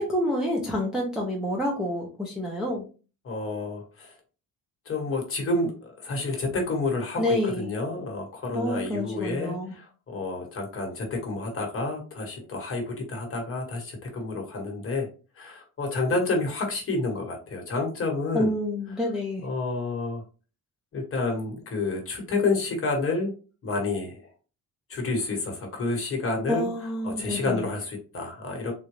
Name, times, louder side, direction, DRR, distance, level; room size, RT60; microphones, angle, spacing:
voice 1, 0.0-2.9 7.2-7.7 8.5-9.7 18.3-19.4 26.5-27.7, left 1 dB, ahead, -3 dB, 0.4 m, -28 dB
voice 2, 3.2-4.1 4.9-15.1 15.4-18.5 19.4-20.2 20.9-23.3 23.6-24.3 24.9-26.7 27.0-28.7, left 3 dB, 35° left, 1 dB, 1.0 m, -29 dB
3.7 x 2.1 x 3.0 m, 0.35 s
cardioid pair, 170°, 37 cm